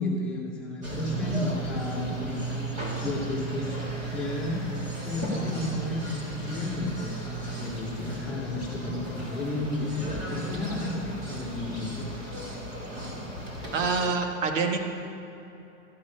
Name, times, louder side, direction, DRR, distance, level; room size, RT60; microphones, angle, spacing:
voice 1, 0.0-2.7 2.9-3.7 4.1-12.1, left 2 dB, 5° left, -9 dB, 2.1 m, -32 dB
sound 1, 0.8-14.1, right 2 dB, 20° right, 1.6 m, -35 dB
voice 2, 13.7-14.8, right 4 dB, 75° right, 4 dB, 1.4 m, -26 dB
13.5 x 8.7 x 5.5 m, 2.9 s
supercardioid pair, 170°, 39 cm